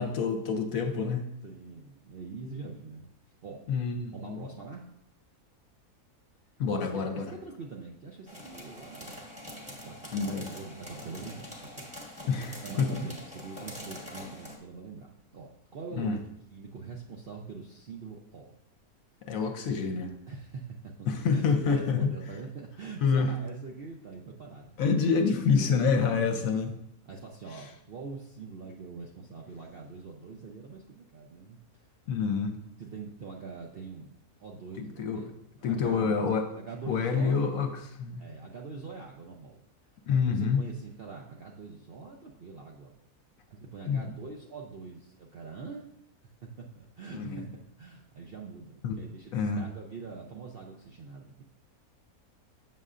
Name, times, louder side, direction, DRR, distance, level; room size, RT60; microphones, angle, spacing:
voice 1, 0.0-1.3 3.7-4.4 6.6-7.3 10.1-10.5 12.3-13.0 16.0-16.2 19.3-20.1 21.1-22.1 23.0-23.3 24.8-26.7 32.1-32.6 34.8-35.2 35.6-36.5 36.9-38.2 40.1-40.6 43.9-44.1 47.1-47.5 48.8-48.9 49.3-49.6, left 5 dB, 70° left, 6 dB, 1.0 m, -27 dB
voice 2, 1.4-3.1 3.4-3.7 4.1-4.8 6.7-9.2 9.6-12.3 12.6-16.2 16.5-18.5 20.3-24.8 25.4-26.0 26.3-26.6 27.1-31.9 32.8-36.3 36.6-37.7 38.2-39.6 40.1-42.9 43.5-45.9 46.4-51.4, right 4 dB, 60° right, 0 dB, 0.6 m, -44 dB
sound 1, 8.3-14.6, left 1 dB, 5° right, 0.9 m, -44 dB
7.4 x 6.6 x 2.4 m, 0.76 s
omnidirectional pair, 1.6 m